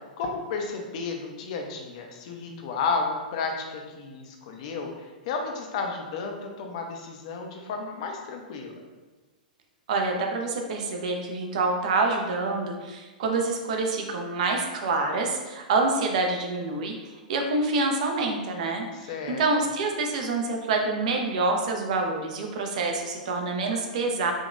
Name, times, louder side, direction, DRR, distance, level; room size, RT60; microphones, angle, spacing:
voice 1, 0.2-8.8 19.0-19.4, left 4 dB, 50° left, 3 dB, 0.7 m, -32 dB
voice 2, 9.9-16.9 17.3-18.8 19.4-24.3, right 3 dB, 55° right, 2 dB, 0.7 m, -26 dB
5.1 x 2.9 x 2.5 m, 1.2 s
figure-of-eight pair, 105°, 5 cm